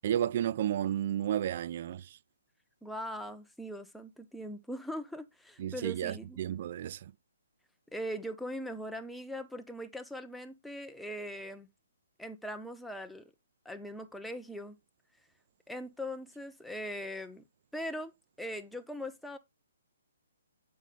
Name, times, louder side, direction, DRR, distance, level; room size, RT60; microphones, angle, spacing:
voice 1, 0.0-2.0 5.6-7.1, right 10 dB, 45° right, 0.4 m, -32 dB
voice 2, 2.8-6.4 7.9-11.7 12.2-13.3 13.6-14.8 15.7-17.4 17.7-18.1 18.4-19.4, equal, ahead, 0.7 m, -40 dB
8.1 x 5.3 x 3.8 m
figure-of-eight pair, 135°, 0 cm